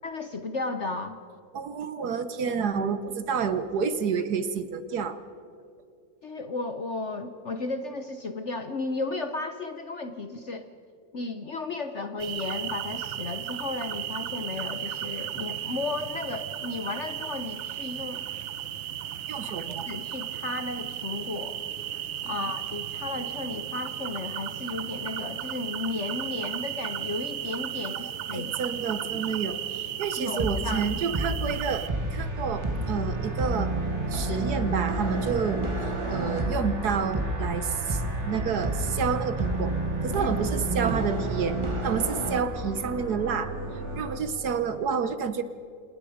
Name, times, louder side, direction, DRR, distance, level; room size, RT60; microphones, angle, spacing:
voice 1, 0.0-1.2 6.2-10.7 11.1-18.2 19.4-21.6 22.2-28.5 30.2-30.9 40.2-40.3, left 3 dB, 50° left, 8 dB, 1.0 m, -34 dB
voice 2, 1.5-5.2 19.3-19.9 22.2-22.3 27.9-28.0 28.3-33.7 34.1-35.6 36.1-39.7 40.0-41.6 41.8-43.5 44.0-45.4, right 6 dB, 60° right, 12 dB, 1.3 m, -29 dB
sound 1, 12.2-31.9, right 11 dB, 90° right, 1.7 m, -35 dB
sound 2, 30.4-42.4, right 1 dB, 15° right, 1.3 m, -30 dB
sound 3, 31.4-44.2, right 2 dB, 35° right, 3.3 m, -37 dB
28.0 x 19.5 x 5.0 m, 2.5 s
omnidirectional pair, 2.1 m